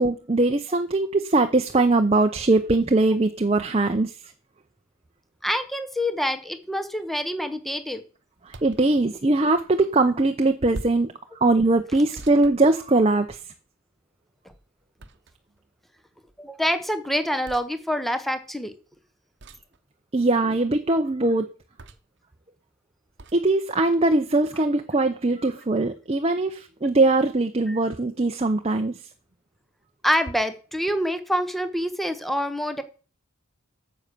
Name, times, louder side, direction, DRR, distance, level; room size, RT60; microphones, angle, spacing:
voice 1, 0.0-4.1 8.5-11.1 11.4-13.4 20.1-21.5 23.3-28.9, right 2 dB, 30° right, 5 dB, 0.7 m, -21 dB
voice 2, 5.4-8.0 16.4-18.7 27.7-27.8 30.0-32.8, equal, ahead, 10 dB, 1.0 m, -26 dB
sound 1, 8.5-8.9 10.7-11.1 12.1-13.3 15.0-15.6 17.4-17.7 19.4-19.8 21.8-22.2 23.2-23.4, right 2 dB, 55° right, 1.0 m, -41 dB
9.5 x 7.3 x 6.7 m, 0.37 s
head